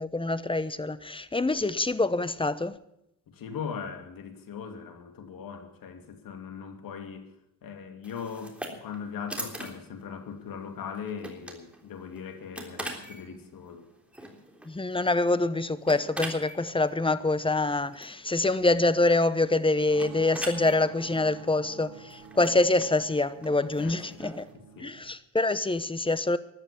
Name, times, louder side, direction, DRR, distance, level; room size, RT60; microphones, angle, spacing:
voice 1, 0.0-2.8 14.6-24.4 24.8-26.4, left 2 dB, 15° left, 0.9 m, -25 dB
voice 2, 3.3-7.3 7.6-13.9 23.8-24.2 24.5-24.9, left 6 dB, 70° left, 2.7 m, -40 dB
sound 1, 8.0-24.5, right 1 dB, 5° right, 3.4 m, -43 dB
sound 2, 19.6-25.1, right 8 dB, 75° right, 2.4 m, -48 dB
13.5 x 12.0 x 7.0 m
cardioid pair, 80°, 35 cm